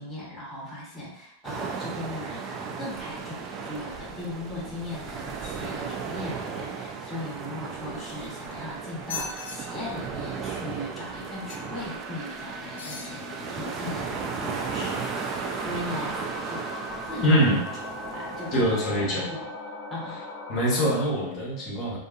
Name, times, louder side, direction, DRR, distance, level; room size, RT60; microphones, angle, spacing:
voice 1, 0.0-16.7 17.0-17.6 18.1-19.0 19.4-19.5 19.9-20.2, left 1 dB, 5° left, -7 dB, 1.0 m, -38 dB
sound 1, 1.4-18.8, right 5 dB, 35° right, 0.3 m, -35 dB
sound 2, 7.8-8.5 9.0-9.6 11.5-11.8 12.7-13.1 13.8-13.9, left 5 dB, 80° left, 0.5 m, -39 dB
sound 3, 9.1-21.1, left 2 dB, 20° left, 0.6 m, -40 dB
voice 2, 17.2-17.6 18.5-19.3 20.5-22.0, equal, 45° left, -5 dB, 1.0 m, -23 dB
2.5 x 2.4 x 2.4 m, 0.81 s
hypercardioid pair, 110°, 0 cm